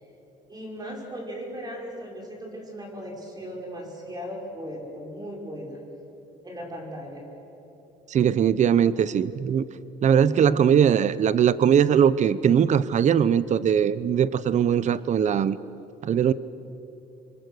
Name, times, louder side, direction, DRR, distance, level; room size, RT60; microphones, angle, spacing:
voice 1, 0.5-5.8 6.4-7.3, equal, 25° right, -1 dB, 5.9 m, -37 dB
voice 2, 8.1-9.6 10.0-15.6 16.0-16.3, right 8 dB, 45° right, 17 dB, 0.8 m, -20 dB
28.5 x 23.5 x 6.5 m, 2.9 s
cardioid pair, 110°, 17 cm